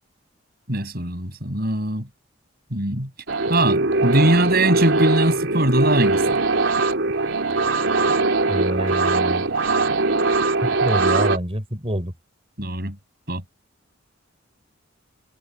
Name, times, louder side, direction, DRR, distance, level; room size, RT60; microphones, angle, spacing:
voice 1, 0.7-2.1 2.7-3.1 3.5-6.4 12.6-13.0 13.3-13.4, right 1 dB, 50° right, 6.7 m, -21 dB
sound 1, 3.3-11.4, right 3 dB, 75° right, 3.3 m, -21 dB
voice 2, 8.5-9.4 10.6-12.1, equal, 30° right, 5.0 m, -26 dB
head